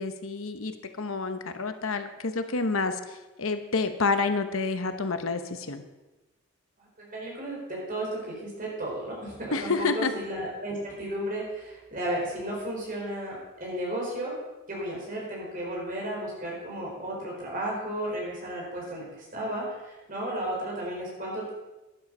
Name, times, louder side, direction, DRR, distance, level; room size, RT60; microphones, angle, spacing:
voice 1, 0.0-5.8 9.5-10.1, left 4 dB, 70° left, 9 dB, 1.0 m, -29 dB
voice 2, 6.8-14.4 14.7-21.5, right 1 dB, 40° right, -3 dB, 4.8 m, -34 dB
12.0 x 11.0 x 5.4 m, 1.1 s
head